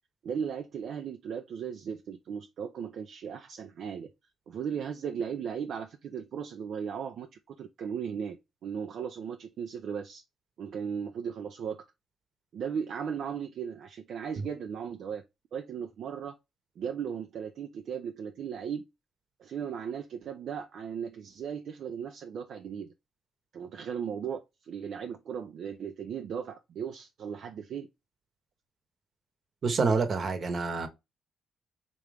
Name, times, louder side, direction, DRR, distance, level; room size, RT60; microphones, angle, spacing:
voice 1, 0.2-4.1 4.5-8.4 8.6-10.2 10.6-11.8 12.5-15.2 15.5-16.4 16.8-18.8 19.4-22.9 23.5-27.9, right 7 dB, 65° right, 0.4 m, -36 dB
voice 2, 29.6-30.9, right 4 dB, 50° right, 1.0 m, -27 dB
3.7 x 3.0 x 3.3 m
cardioid pair, 90°, 0 cm